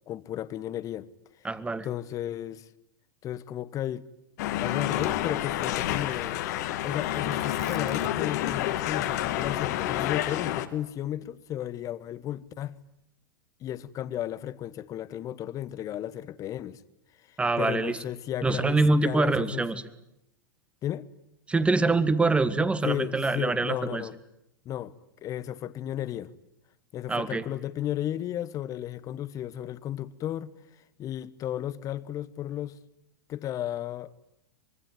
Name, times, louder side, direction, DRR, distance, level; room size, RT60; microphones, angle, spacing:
voice 1, 0.1-1.1 1.4-1.5 1.8-2.7 3.2-4.1 4.5-6.4 6.8-12.8 13.6-16.8 17.3-19.8 20.8-21.1 22.8-24.2 24.6-24.9 25.2-26.3 26.9-30.5 31.0-32.8 33.3-34.1, left 12 dB, 30° left, 1.1 m, -34 dB
voice 2, 1.4-1.9 17.4-18.0 18.4-19.8 21.5-24.0 27.1-27.4, right 3 dB, 10° right, 1.7 m, -25 dB
sound 1, 4.4-10.7, left 13 dB, 55° left, 1.9 m, -29 dB
Tearing, 7.0-8.4 8.7-8.8 9.3-11.7 12.4-12.9, right 8 dB, 30° right, 2.0 m, -49 dB
25.0 x 22.5 x 9.4 m
figure-of-eight pair, 100°, 11 cm